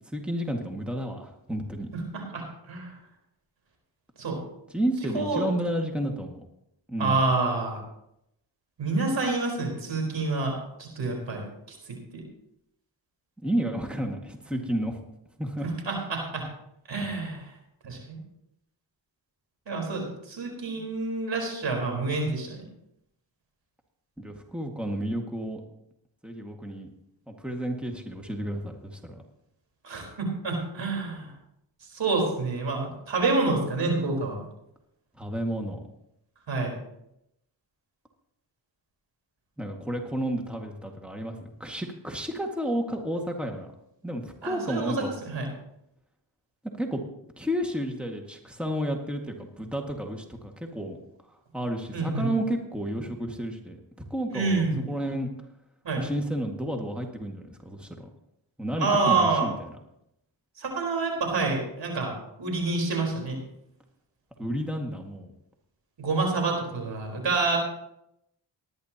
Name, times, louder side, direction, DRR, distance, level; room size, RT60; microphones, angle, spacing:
voice 1, 0.1-1.9 4.7-6.4 6.9-7.2 13.4-15.0 15.4-15.7 24.2-25.6 26.2-26.9 27.3-29.1 35.2-35.8 39.6-43.7 44.0-45.1 46.8-47.0 47.4-51.0 51.3-53.8 54.1-55.3 56.0-58.1 58.6-59.7 64.4-65.3, equal, ahead, 2 dB, 1.9 m, -31 dB
voice 2, 1.9-2.9 4.2-4.4 5.1-5.5 7.0-7.8 8.8-11.4 11.7-12.2 15.6-16.5 16.9-17.4 17.8-18.2 19.7-22.6 29.8-31.3 31.9-34.4 36.5-36.7 44.4-45.0 45.2-45.5 51.9-52.3 54.3-54.9 55.8-56.0 58.8-59.5 60.6-63.4 66.0-67.6, right 3 dB, 70° right, 1 dB, 4.4 m, -28 dB
19.0 x 10.5 x 2.9 m, 0.81 s
cardioid pair, 55°, 45 cm